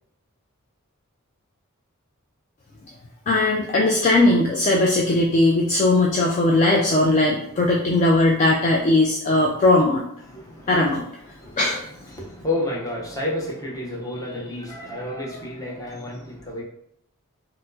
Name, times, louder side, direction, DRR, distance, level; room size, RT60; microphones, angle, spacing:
voice 1, 3.3-10.0 10.7-11.0 11.6-11.8, left 2 dB, 35° left, -2 dB, 0.3 m, -19 dB
voice 2, 10.2-10.8 11.2-11.6 12.0-16.6, left 1 dB, 15° left, -4 dB, 0.7 m, -31 dB
4.3 x 2.0 x 2.7 m, 0.71 s
head